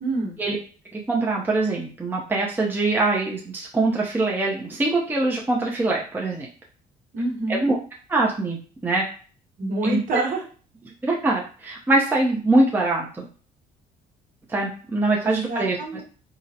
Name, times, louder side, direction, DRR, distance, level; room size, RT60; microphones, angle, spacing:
voice 1, 0.0-0.4 7.1-7.7 9.6-10.4 15.2-16.0, right 2 dB, 50° right, -2 dB, 1.1 m, -27 dB
voice 2, 0.9-6.5 7.5-7.8 8.1-9.0 9.8-10.0 11.0-13.3 14.5-16.0, right 2 dB, 10° right, -2 dB, 0.5 m, -23 dB
3.7 x 2.0 x 2.7 m, 0.39 s
cardioid pair, 110°, 17 cm